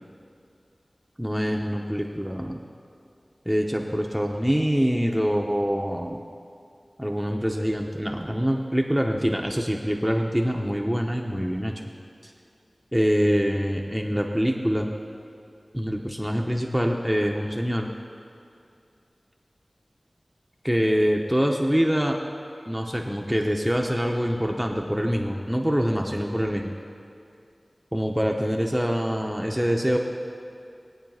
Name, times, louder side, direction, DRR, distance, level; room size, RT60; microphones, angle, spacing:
voice 1, 1.2-2.6 3.5-6.2 7.0-11.8 12.9-14.9 15.7-17.9 20.6-22.2 22.7-26.7 27.9-30.0, equal, 5° right, 1 dB, 0.8 m, -25 dB
20.5 x 8.9 x 2.4 m, 2.5 s
wide cardioid pair, 50°, 0 cm